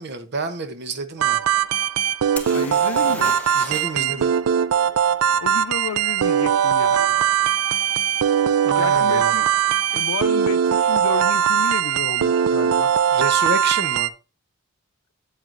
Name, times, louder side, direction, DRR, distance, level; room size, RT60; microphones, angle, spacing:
voice 1, 0.0-1.4 3.5-4.3 8.6-9.4 13.1-14.1, right 3 dB, 50° right, 0.9 m, -29 dB
sound 1, 1.2-14.1, right 8 dB, 80° right, 0.4 m, -20 dB
sound 2, 2.4-4.1 4.3-4.4 7.8-7.9 8.6-8.8 9.0-9.6 11.7-11.8 12.0-12.1, left 2 dB, 5° left, 0.9 m, -36 dB
voice 2, 2.5-3.4 4.0-4.2 5.4-7.2 8.8-9.5 9.9-12.9, left 6 dB, 90° left, 0.5 m, -31 dB
7.9 x 7.6 x 2.6 m
head